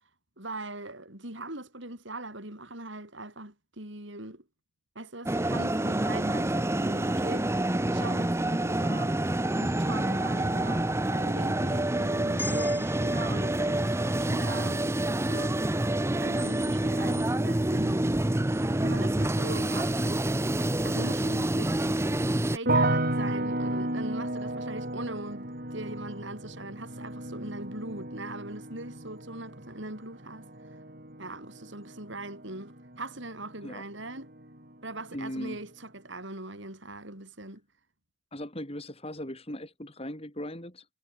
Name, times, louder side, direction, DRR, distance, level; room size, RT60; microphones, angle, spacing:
voice 1, 0.4-4.4 4.9-9.2 9.6-15.6 16.2-18.0 18.8-20.3 20.8-21.9 22.5-30.5 31.2-34.3 34.8-37.6, right 2 dB, 60° right, 6.1 m, -41 dB
sound 1, 5.3-22.6, right 1 dB, 15° right, 0.6 m, -27 dB
sound 2, 12.4-16.6, left 3 dB, 10° left, 4.5 m, -45 dB
sound 3, 22.7-33.7 34.0-34.7, right 1 dB, 45° right, 7.1 m, -33 dB
voice 2, 35.1-35.6 38.3-40.9, left 1 dB, 30° left, 6.2 m, -38 dB
head